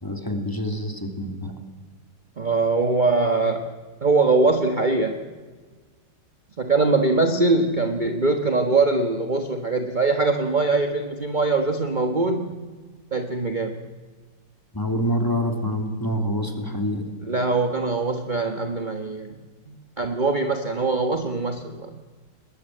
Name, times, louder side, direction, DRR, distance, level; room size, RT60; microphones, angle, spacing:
voice 1, 0.0-1.5 14.7-17.1, equal, 10° left, 5 dB, 2.8 m, -26 dB
voice 2, 2.4-3.7 4.0-5.2 6.6-12.6 13.1-13.7 17.2-19.4 19.7-21.9, right 3 dB, 30° right, 5 dB, 1.4 m, -22 dB
22.5 x 20.5 x 9.3 m, 1.4 s
omnidirectional pair, 1.9 m